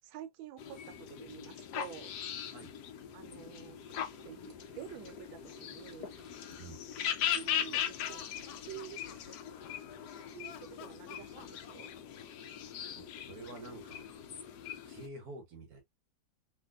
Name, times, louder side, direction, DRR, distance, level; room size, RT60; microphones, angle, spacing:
voice 1, 0.0-2.1 3.1-3.8 4.2-6.2 7.3-8.3 8.6-9.0 10.3-11.9, right 11 dB, 80° right, 1.3 m, -48 dB
sound 1, 0.6-15.1, left 9 dB, 70° left, 1.0 m, -40 dB
Water / Liquid, 3.9-9.3, right 1 dB, 20° right, 0.6 m, -62 dB
Laughter, 7.5-10.0 10.4-12.5, left 9 dB, 90° left, 1.4 m, -52 dB
voice 2, 13.0-14.0 14.9-15.8, right 2 dB, 60° right, 1.1 m, -48 dB
3.3 x 2.8 x 2.3 m
omnidirectional pair, 2.1 m